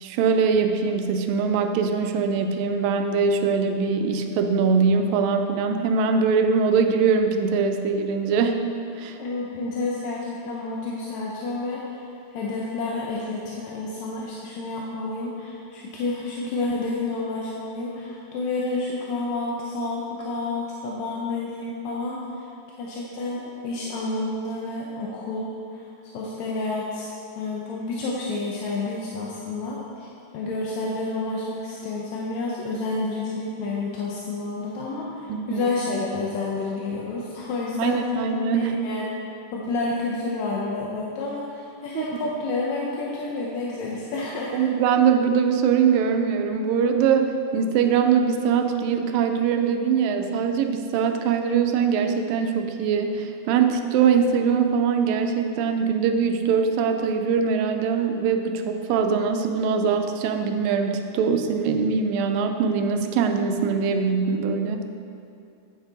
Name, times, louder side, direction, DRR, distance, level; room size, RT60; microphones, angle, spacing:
voice 1, 0.0-8.6 9.0-9.2 35.3-35.7 37.8-38.7 41.9-42.1 44.5-64.9, right 6 dB, 90° right, 5 dB, 2.3 m, -22 dB
voice 2, 9.2-12.0 12.3-22.5 22.8-30.1 30.3-38.2 38.5-39.2 39.5-44.7, left 3 dB, 70° left, -4 dB, 1.8 m, -30 dB
9.5 x 7.1 x 4.0 m, 2.5 s
omnidirectional pair, 3.9 m